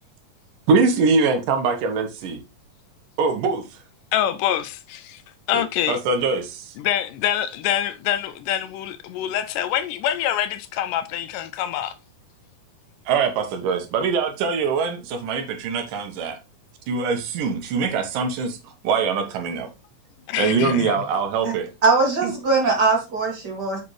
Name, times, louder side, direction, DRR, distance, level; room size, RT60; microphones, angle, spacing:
voice 1, 0.7-2.4 3.2-3.6 5.5-6.7 13.1-16.4 16.9-18.6 18.8-19.7 20.4-21.7 22.2-22.3, right 4 dB, 80° right, 2.8 m, -23 dB
voice 2, 4.1-5.2 5.5-6.0 6.8-11.9 20.3-21.0, left 11 dB, 80° left, 2.1 m, -25 dB
voice 3, 21.8-23.8, right 3 dB, 35° right, 2.2 m, -20 dB
7.6 x 5.5 x 3.1 m
omnidirectional pair, 3.8 m